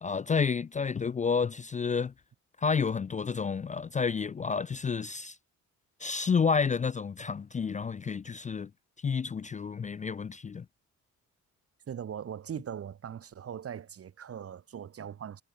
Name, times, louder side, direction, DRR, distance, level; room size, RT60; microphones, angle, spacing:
voice 1, 0.0-2.1 2.6-5.4 6.0-8.7 9.0-10.6, left 5 dB, 25° left, 0.5 m, -30 dB
voice 2, 11.9-15.4, right 8 dB, 50° right, 1.7 m, -40 dB
cardioid pair, 90°, 30 cm